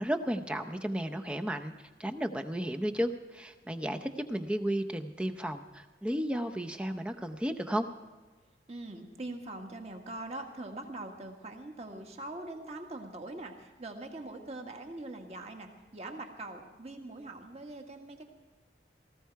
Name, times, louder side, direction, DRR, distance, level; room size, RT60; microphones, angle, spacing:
voice 1, 0.0-7.9, equal, 5° right, 6 dB, 0.6 m, -33 dB
voice 2, 8.7-18.2, right 2 dB, 35° right, 4 dB, 1.6 m, -42 dB
18.5 x 15.0 x 4.6 m, 1.3 s
head